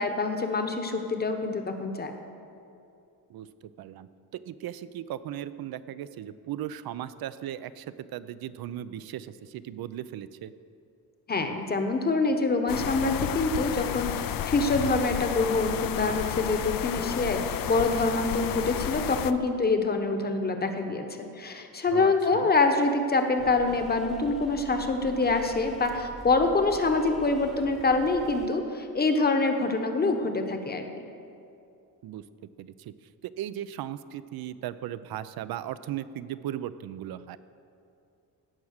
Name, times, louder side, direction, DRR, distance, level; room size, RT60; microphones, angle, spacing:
voice 1, 0.0-2.1 11.3-31.1, left 3 dB, 25° left, 6 dB, 0.9 m, -26 dB
voice 2, 3.3-4.1 4.5-10.5 21.9-22.5 32.0-32.2 32.6-33.0 33.2-37.4, right 11 dB, 70° right, 15 dB, 0.6 m, -37 dB
sound 1, 12.7-19.3, left 10 dB, 60° left, 0.5 m, -32 dB
sound 2, 23.4-28.5, right 1 dB, ahead, 0.9 m, -45 dB
17.0 x 6.0 x 6.5 m, 2.6 s
cardioid pair, 140°, 37 cm